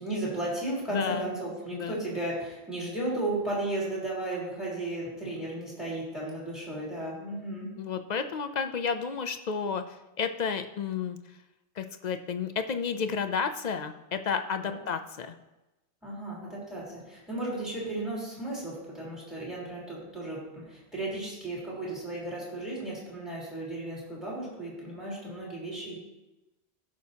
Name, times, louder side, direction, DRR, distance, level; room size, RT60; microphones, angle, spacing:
voice 1, 0.0-7.7 14.6-14.8 16.0-26.0, right 2 dB, ahead, -5 dB, 3.7 m, -34 dB
voice 2, 0.9-1.3 1.7-2.0 7.8-11.2 11.8-15.4, left 6 dB, 50° left, 8 dB, 0.5 m, -31 dB
16.5 x 6.2 x 2.8 m, 1.0 s
omnidirectional pair, 1.2 m